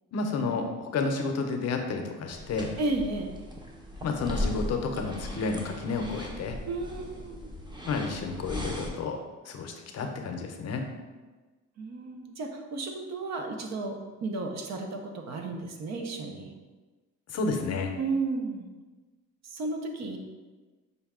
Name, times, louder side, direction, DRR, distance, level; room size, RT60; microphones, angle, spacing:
voice 1, 0.1-2.7 4.0-6.6 7.8-9.2 9.5-10.8 17.3-17.9, left 4 dB, 55° left, 4 dB, 0.6 m, -31 dB
sound 1, 2.3-8.9, left 1 dB, 15° right, 0.7 m, -37 dB
voice 2, 2.8-3.3 6.7-7.5 11.8-13.9 14.2-16.5 18.0-18.7 19.5-20.2, right 3 dB, 60° right, 3 dB, 0.7 m, -33 dB
5.3 x 2.3 x 3.6 m, 1.3 s
cardioid pair, 90°, 30 cm